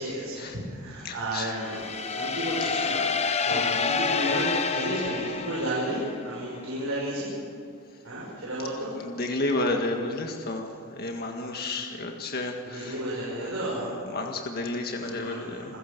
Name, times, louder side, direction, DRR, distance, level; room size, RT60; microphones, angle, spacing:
voice 1, 0.0-7.3 8.0-9.0 12.6-14.0 14.9-15.8, right 1 dB, 70° right, -6 dB, 5.9 m, -32 dB
voice 2, 1.0-1.5 2.7-4.0 8.9-13.0 13.3-13.5 13.9-15.7, left 2 dB, 45° left, 3 dB, 1.8 m, -32 dB
sound 1, 1.6-6.3, left 5 dB, 30° left, 0.8 m, -28 dB
27.0 x 15.5 x 6.8 m, 2.2 s
head